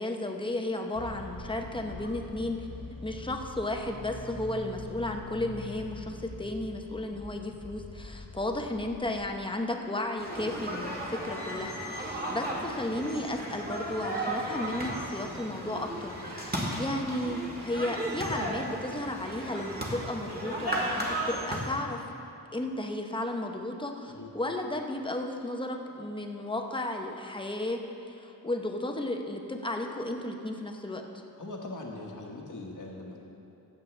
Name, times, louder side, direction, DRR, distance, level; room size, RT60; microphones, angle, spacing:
voice 1, 0.0-2.7 3.0-22.0 22.5-27.8 28.1-31.0, left 1 dB, 15° left, 3 dB, 0.8 m, -34 dB
sound 1, 0.9-9.3, left 2 dB, 30° left, 1.6 m, -44 dB
sound 2, 10.2-21.7, right 1 dB, 25° right, 1.7 m, -35 dB
voice 2, 31.4-33.2, left 2 dB, 55° left, -1 dB, 1.4 m, -41 dB
15.5 x 7.5 x 3.3 m, 2.7 s
wide cardioid pair, 80°, 36 cm